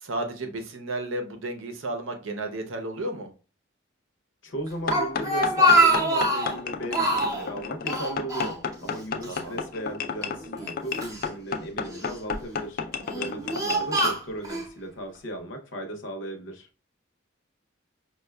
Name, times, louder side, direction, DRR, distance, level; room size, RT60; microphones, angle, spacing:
voice 1, 0.0-3.3 9.3-9.6 13.0-13.5, right 2 dB, 70° right, 0.6 m, -33 dB
voice 2, 4.4-16.7, right 1 dB, 65° left, 0.7 m, -36 dB
Speech, 4.7-6.6 6.9-7.5 7.9-9.0 9.2-9.4 10.2-11.2 11.9-12.4 13.0-14.7, equal, 15° right, 0.5 m, -24 dB
sound 1, 4.9-14.1, left 5 dB, 45° left, 0.3 m, -32 dB
5.2 x 2.2 x 2.2 m
head